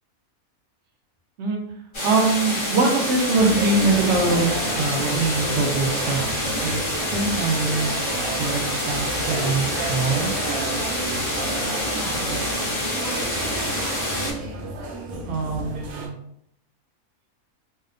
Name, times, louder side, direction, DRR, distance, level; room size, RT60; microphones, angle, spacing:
sound 1, 1.9-14.3, left 1 dB, 50° left, 0.3 m, -27 dB
voice 1, 2.0-6.8 7.1-10.3 12.0-12.9 15.2-16.2, right 3 dB, 65° right, 2 dB, 0.8 m, -24 dB
sound 2, 3.4-16.1, right 2 dB, 80° right, 1.0 m, -32 dB
2.7 x 2.1 x 2.4 m, 0.75 s
omnidirectional pair, 1.5 m